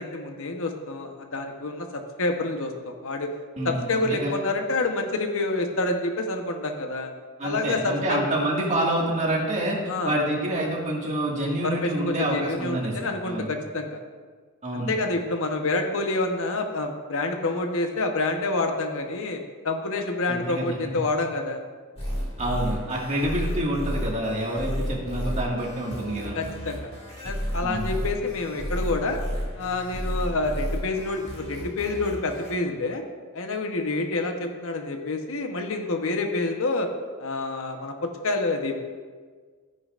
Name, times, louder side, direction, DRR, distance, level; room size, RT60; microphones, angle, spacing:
voice 1, 0.0-3.3 3.6-7.1 7.4-8.2 9.9-10.2 11.4-14.0 14.7-21.6 26.3-26.9 27.2-29.2 29.5-33.0 33.3-36.9 37.2-38.8, left 2 dB, 65° left, 4 dB, 1.0 m, -28 dB
voice 2, 3.6-4.3 7.4-9.8 10.0-12.9 13.2-13.5 14.6-14.9 20.3-20.7 22.4-26.4 27.6-27.9, right 1 dB, 35° right, -3 dB, 1.9 m, -27 dB
sound 1, 22.0-32.5, equal, 30° left, 2.4 m, -32 dB
13.5 x 9.7 x 2.5 m, 1.5 s
head